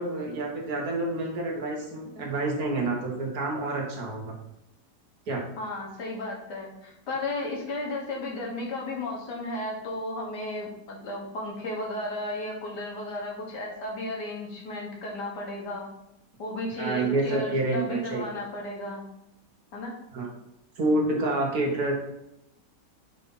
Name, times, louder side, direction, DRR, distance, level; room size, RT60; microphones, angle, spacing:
voice 1, 0.0-4.3 5.3-5.4 16.8-18.2 20.1-20.3 20.8-21.9, right 2 dB, 60° right, -1 dB, 1.9 m, -28 dB
voice 2, 5.6-15.9 16.4-19.0 19.7-19.9, left 1 dB, 75° left, -1 dB, 2.1 m, -34 dB
5.5 x 4.1 x 5.5 m, 0.84 s
omnidirectional pair, 1.8 m